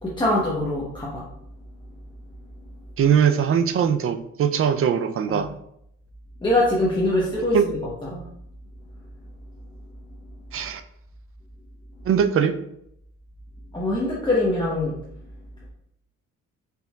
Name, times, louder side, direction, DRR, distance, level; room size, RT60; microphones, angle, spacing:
voice 1, 0.0-1.3 5.3-5.4 6.4-8.2 13.7-15.0, left 1 dB, 15° left, -6 dB, 1.0 m, -23 dB
voice 2, 3.0-5.5 7.5-7.7 10.5-10.8 12.0-12.6, right 8 dB, 45° right, 8 dB, 0.5 m, -21 dB
5.0 x 4.5 x 2.3 m, 0.75 s
cardioid pair, 90°, 30 cm